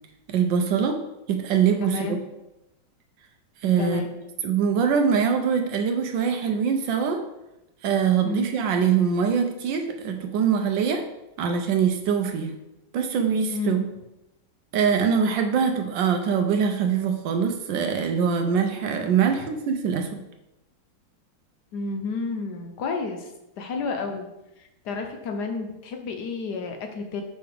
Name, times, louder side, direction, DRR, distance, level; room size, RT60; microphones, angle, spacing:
voice 1, 0.3-1.0 1.3-2.2 3.6-4.0 4.4-7.3 7.8-11.0 11.4-12.6 12.9-13.8 14.7-20.2, right 6 dB, 75° right, 5 dB, 1.1 m, -23 dB
voice 2, 1.8-2.2 3.8-4.1 8.2-8.5 13.5-14.0 19.2-19.5 21.7-23.3 23.6-24.3 24.8-27.2, left 4 dB, 65° left, 4 dB, 1.1 m, -31 dB
5.6 x 5.3 x 3.4 m, 0.91 s
omnidirectional pair, 2.3 m